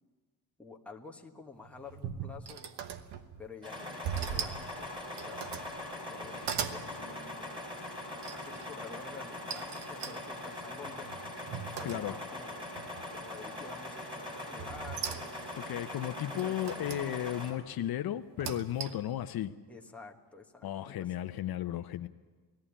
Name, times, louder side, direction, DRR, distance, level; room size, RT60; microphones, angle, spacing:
voice 1, 0.6-2.6 3.4-5.5 5.9-7.7 8.0-11.1 11.7-12.7 13.1-15.3 16.3-17.2 19.7-21.1, left 4 dB, 5° left, 0 dB, 1.3 m, -50 dB
sound 1, 1.6-3.5 4.0-4.7 5.1-5.7 6.2-6.8 8.2-8.7 9.5-12.4 12.8-13.3 14.6-15.6 16.4-17.1 18.2-19.1, right 8 dB, 80° right, 1.2 m, -40 dB
sound 2, 3.6-17.5, left 1 dB, 10° right, 4.0 m, -42 dB
voice 2, 11.8-12.2 15.6-19.5 20.6-22.1, left 12 dB, 65° left, 10 dB, 0.6 m, -34 dB
19.0 x 14.5 x 9.9 m, 1.4 s
wide cardioid pair, 155°, 40 cm